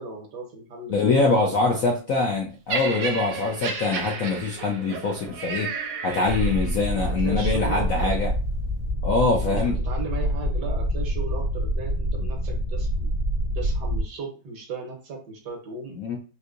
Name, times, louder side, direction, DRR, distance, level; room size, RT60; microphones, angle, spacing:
voice 1, 0.0-1.9 6.9-8.1 9.4-13.1 13.5-16.0, right 4 dB, 65° right, 2 dB, 1.5 m, -37 dB
voice 2, 0.9-5.7 6.0-8.3 9.0-9.8 16.0-16.2, left 3 dB, 65° left, -1 dB, 0.8 m, -24 dB
Laughter, 2.7-6.9 7.7-7.9, right 5 dB, 80° right, 1.5 m, -32 dB
sound 1, 6.3-14.0, equal, 40° right, 0.5 m, -26 dB
4.3 x 2.7 x 2.5 m, 0.34 s
omnidirectional pair, 2.1 m